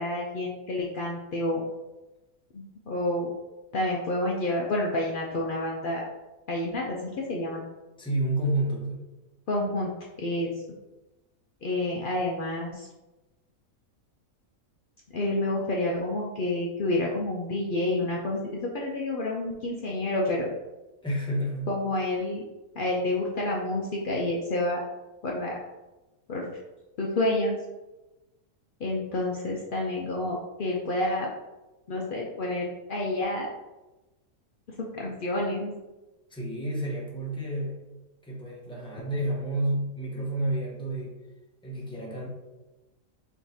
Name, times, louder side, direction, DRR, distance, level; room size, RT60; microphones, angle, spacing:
voice 1, 0.0-1.6 2.5-3.3 3.7-6.0 6.5-7.7 9.5-9.9 10.2-10.5 11.6-12.9 15.1-20.5 21.7-22.4 22.8-24.8 25.2-25.5 26.3-26.5 27.0-27.6 28.8-31.3 31.9-33.5 34.9-35.7, left 1 dB, 80° left, -2 dB, 0.4 m, -29 dB
voice 2, 8.0-9.1 21.0-21.8 36.3-37.8 38.2-41.2 41.6-42.3, right 1 dB, 5° left, -4 dB, 0.7 m, -30 dB
4.6 x 3.2 x 2.7 m, 1.1 s
omnidirectional pair, 1.6 m